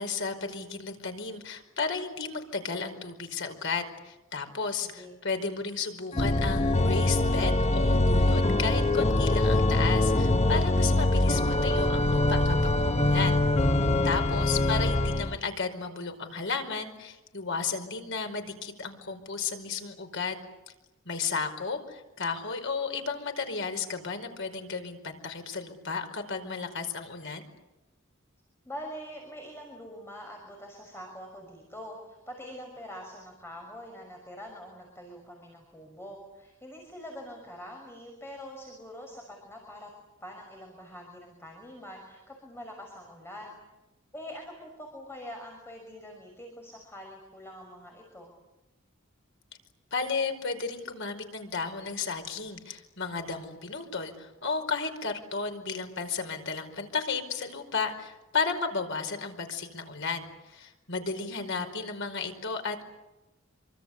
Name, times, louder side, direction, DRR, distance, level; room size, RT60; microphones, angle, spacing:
voice 1, 0.0-13.4 14.0-20.4 21.0-27.4 49.9-62.8, left 4 dB, 65° left, 6 dB, 5.0 m, -33 dB
voice 2, 4.5-5.2 28.6-39.9 40.2-43.6 44.1-48.3, equal, 10° left, 1 dB, 6.3 m, -44 dB
Organ, 6.1-15.4, left 2 dB, 30° left, 1.2 m, -24 dB
27.5 x 25.0 x 8.4 m, 1.0 s
head